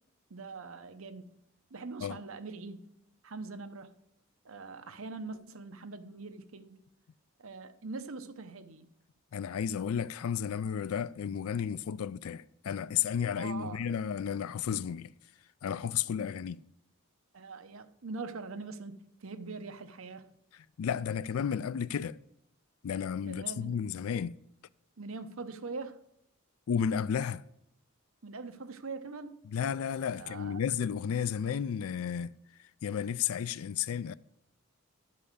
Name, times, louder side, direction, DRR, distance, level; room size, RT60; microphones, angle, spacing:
voice 1, 0.3-1.3 1.7-2.8 3.2-3.9 4.4-6.8 7.4-8.9 13.3-13.8 17.3-20.3 23.3-23.8 25.0-26.0 28.2-29.4 30.1-30.6 31.3-31.4, right 3 dB, 75° right, 0.8 m, -43 dB
voice 2, 9.3-15.1 15.6-16.6 20.8-22.2 22.8-24.4 26.7-27.4 29.5-32.4 32.8-34.1, left 8 dB, 85° left, 0.4 m, -32 dB
12.0 x 5.5 x 6.5 m
head